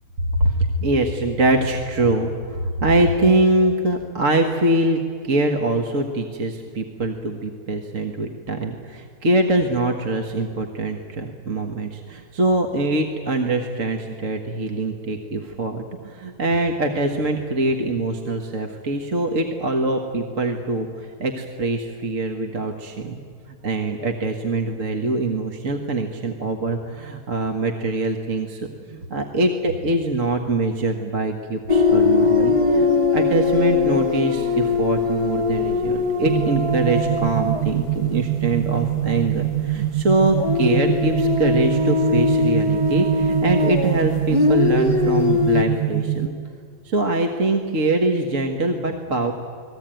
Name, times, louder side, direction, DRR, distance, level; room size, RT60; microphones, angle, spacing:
voice 1, 0.3-23.2 23.6-46.3 46.9-49.3, right 2 dB, 50° right, 3 dB, 1.9 m, -23 dB
sound 1, 31.7-39.1 39.4-39.6 40.3-45.6, left 4 dB, 20° right, 1.1 m, -21 dB
sound 2, 36.3-46.3, right 13 dB, 70° right, 1.5 m, -24 dB
29.5 x 20.5 x 9.1 m, 2.2 s
omnidirectional pair, 1.8 m